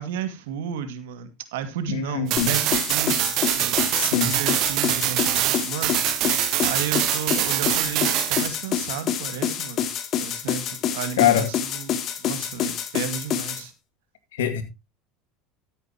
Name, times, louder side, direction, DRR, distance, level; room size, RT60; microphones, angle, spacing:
voice 1, 0.0-3.8 4.2-6.0 6.6-9.9 10.2-13.7, right 8 dB, 80° right, 2.1 m, -33 dB
voice 2, 1.9-2.5 3.9-4.3 11.2-11.5 14.3-14.6, left 10 dB, 85° left, 2.2 m, -23 dB
sound 1, 2.3-8.5, right 17 dB, 60° right, 0.6 m, -24 dB
sound 2, 2.4-13.6, left 8 dB, 50° left, 2.5 m, -27 dB
13.5 x 9.3 x 2.9 m
hypercardioid pair, 95°, 0 cm